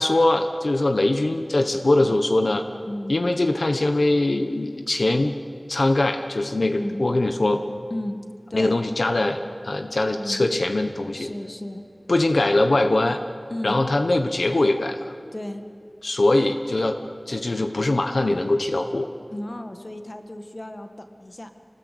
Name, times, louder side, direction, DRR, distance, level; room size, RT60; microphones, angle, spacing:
voice 1, 0.0-2.7 3.1-5.3 5.7-7.6 8.5-11.3 12.1-13.2 13.6-15.1 16.0-17.0 17.3-19.1, left 2 dB, 85° left, 6 dB, 1.2 m, -22 dB
voice 2, 6.7-7.0 7.9-8.2 8.5-8.8 10.1-10.5 11.1-11.8 13.5-13.8 15.3-15.6 19.3-21.5, left 1 dB, 45° left, 7 dB, 1.9 m, -34 dB
26.0 x 20.0 x 8.6 m, 2.3 s
wide cardioid pair, 55°, 0 cm